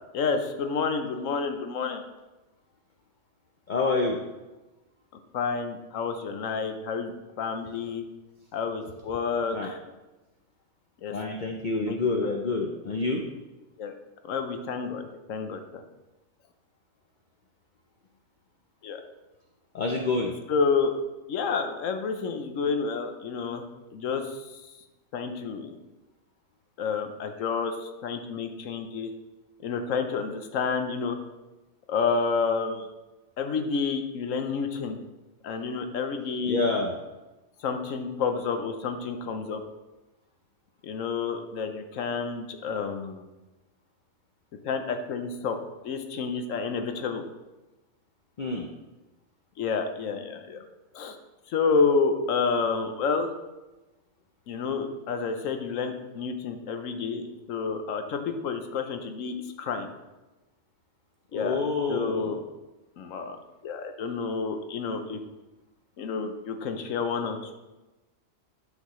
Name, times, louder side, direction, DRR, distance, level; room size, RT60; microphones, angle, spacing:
voice 1, 0.1-2.0 5.3-8.0 8.5-9.8 11.0-11.1 11.9-12.0 13.8-13.9 14.2-15.8 18.8-19.0 20.5-20.9 21.3-23.6 23.9-24.6 25.1-25.8 26.8-29.1 29.6-31.2 31.9-32.9 33.4-35.0 35.4-36.6 37.6-39.6 40.8-43.3 44.6-45.6 45.8-47.2 49.6-50.6 50.9-51.2 51.5-53.3 54.5-59.9 61.3-61.6 61.9-62.4 63.0-63.4 63.6-65.2 66.0-67.5, left 5 dB, 80° left, 6 dB, 1.1 m, -29 dB
voice 2, 3.7-4.2 9.5-9.7 11.1-13.2 19.7-20.3 35.5-35.6 36.4-36.9 48.4-48.7 61.3-62.4, left 3 dB, 50° left, 3 dB, 0.7 m, -27 dB
11.5 x 5.6 x 3.1 m, 1.1 s
omnidirectional pair, 1.3 m